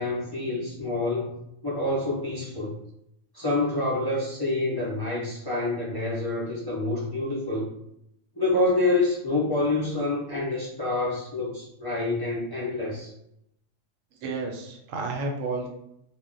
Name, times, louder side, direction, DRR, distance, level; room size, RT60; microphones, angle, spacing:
voice 1, 0.0-1.4 1.6-2.8 3.3-7.7 8.3-13.1, left 2 dB, 35° left, -7 dB, 0.4 m, -27 dB
voice 2, 14.2-15.7, right 3 dB, 90° right, 2 dB, 1.0 m, -31 dB
2.2 x 2.1 x 3.7 m, 0.78 s
omnidirectional pair, 1.3 m